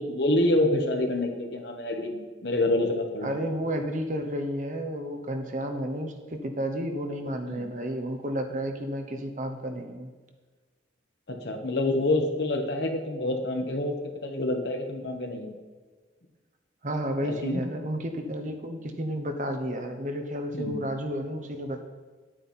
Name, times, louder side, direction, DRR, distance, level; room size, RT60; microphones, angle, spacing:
voice 1, 0.0-3.3 7.5-7.7 11.3-13.9 14.2-15.5 17.2-17.6 20.5-20.8, left 1 dB, 60° left, 3 dB, 1.4 m, -27 dB
voice 2, 3.2-10.1 16.8-21.8, equal, 40° right, 5 dB, 1.0 m, -32 dB
10.0 x 9.0 x 4.3 m, 1.4 s
head